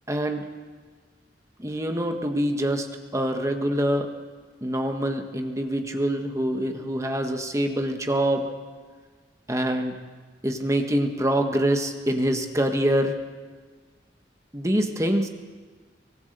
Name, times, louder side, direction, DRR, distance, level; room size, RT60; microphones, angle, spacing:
voice 1, 0.1-0.4 1.6-2.9 3.1-4.1 4.6-8.5 9.5-10.0 10.4-13.2 14.5-15.3, right 1 dB, 15° right, 4 dB, 1.6 m, -25 dB
24.5 x 18.0 x 6.8 m, 1.5 s
head